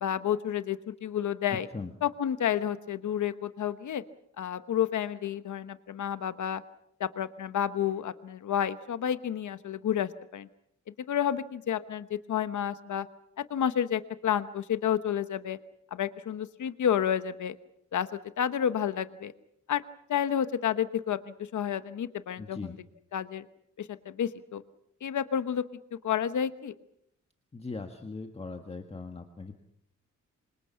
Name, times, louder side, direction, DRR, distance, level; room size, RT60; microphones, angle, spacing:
voice 1, 0.0-1.7 2.0-4.0 4.4-6.6 7.0-10.5 11.1-13.1 13.4-15.6 15.9-17.6 17.9-18.1 18.4-19.3 19.7-19.8 20.1-22.7 23.1-23.4 23.8-24.6 25.0-25.6 25.9-26.7, left 9 dB, 80° left, 12 dB, 1.1 m, -30 dB
voice 2, 1.5-1.9 22.4-22.7 27.5-29.5, left 3 dB, 20° left, 5 dB, 1.6 m, -39 dB
28.0 x 25.0 x 5.8 m, 0.72 s
wide cardioid pair, 180°, 30 cm